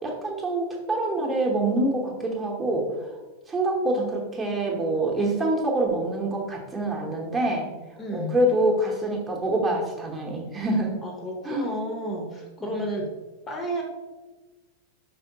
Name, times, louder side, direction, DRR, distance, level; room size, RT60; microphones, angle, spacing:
voice 1, 0.0-3.1 3.5-7.7 8.1-10.9 11.4-11.7 12.6-12.8, right 1 dB, 20° right, -1 dB, 0.9 m, -26 dB
voice 2, 4.0-4.5 8.0-8.4 11.0-13.1 13.5-13.8, equal, 20° left, 1 dB, 0.7 m, -32 dB
5.0 x 3.4 x 2.8 m, 1.2 s
figure-of-eight pair, 90°, 0 cm